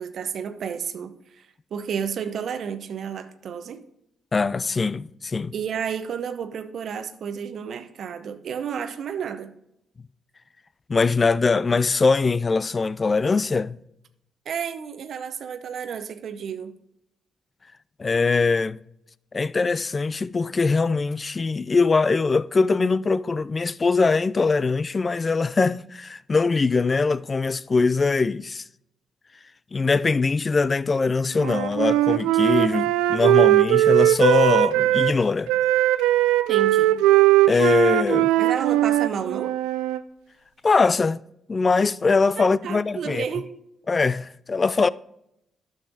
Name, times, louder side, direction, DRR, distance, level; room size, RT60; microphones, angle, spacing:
voice 1, 0.0-3.8 5.5-9.5 14.5-16.7 36.5-37.1 38.4-39.6 42.4-43.5, right 7 dB, 65° right, 0.7 m, -31 dB
voice 2, 4.3-5.5 10.9-13.8 18.0-18.8 19.3-28.6 29.7-35.5 37.5-38.3 40.6-41.2 41.5-43.2 43.9-44.9, left 4 dB, 40° left, 0.3 m, -22 dB
Wind instrument woodwind instrument, 31.4-35.2 35.5-40.0, right 14 dB, 80° right, 0.3 m, -19 dB
12.0 x 6.3 x 2.6 m
hypercardioid pair, 45°, 0 cm